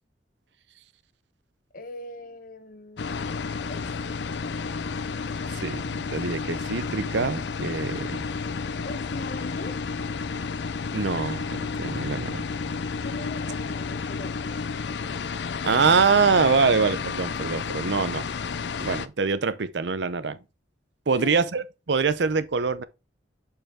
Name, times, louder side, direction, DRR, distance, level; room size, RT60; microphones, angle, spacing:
voice 1, 1.7-5.2 8.8-9.8 13.0-14.8 21.1-21.4, left 2 dB, 50° left, 0.8 m, -41 dB
sound 1, 3.0-19.1, left 5 dB, 70° left, 0.5 m, -31 dB
voice 2, 5.5-8.2 10.9-12.5 15.6-18.3 18.8-20.4 21.1-22.8, right 5 dB, 70° right, 0.6 m, -24 dB
6.9 x 5.3 x 3.6 m
head